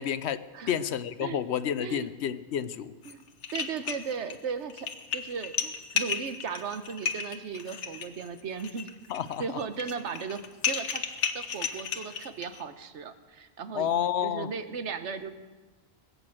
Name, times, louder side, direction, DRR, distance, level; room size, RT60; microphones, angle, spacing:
voice 1, 0.0-2.9 9.1-9.4 13.7-14.6, left 9 dB, 75° left, 15 dB, 0.9 m, -30 dB
sound 1, 3.0-3.1 3.4-4.4 4.7-12.6, left 7 dB, 90° left, 1.3 m, -33 dB
voice 2, 3.5-9.0 9.4-11.0 11.3-13.9 14.2-15.3, right 6 dB, 85° right, 10 dB, 1.3 m, -36 dB
20.5 x 8.2 x 7.6 m, 1.3 s
omnidirectional pair, 1.2 m